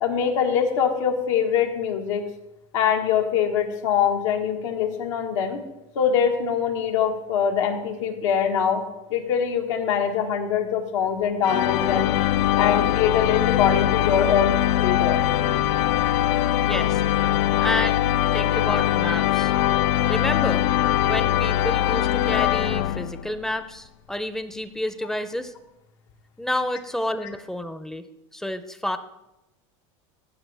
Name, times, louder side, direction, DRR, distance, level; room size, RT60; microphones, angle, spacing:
voice 1, 0.0-2.2 2.7-5.6 5.9-8.8 9.1-12.1 12.6-14.5 14.8-15.2, left 7 dB, 90° left, 3 dB, 1.5 m, -23 dB
sound 1, 11.4-23.4, left 12 dB, 70° left, 0.4 m, -22 dB
voice 2, 16.6-17.0 17.6-18.1 18.3-19.5 20.1-20.6 21.0-25.5 26.4-28.1 28.3-29.0, left 1 dB, 5° left, 11 dB, 0.4 m, -29 dB
15.0 x 6.0 x 3.3 m, 0.94 s
supercardioid pair, 140°, 16 cm